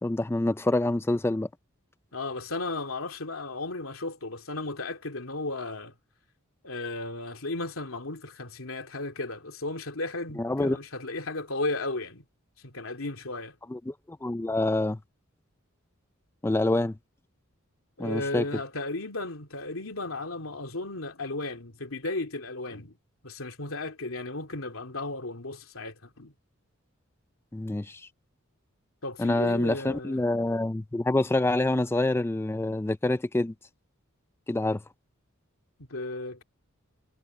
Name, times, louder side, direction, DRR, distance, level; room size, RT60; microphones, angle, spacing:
voice 1, 0.0-1.5 10.4-10.8 13.7-15.0 16.4-17.0 18.0-18.4 27.5-28.1 29.2-33.5 34.5-34.8, left 2 dB, 10° left, 0.4 m, -26 dB
voice 2, 2.1-5.9 6.6-12.2 12.6-13.6 18.0-23.0 23.2-26.3 29.0-30.2 35.9-36.4, left 2 dB, 80° left, 2.8 m, -35 dB
head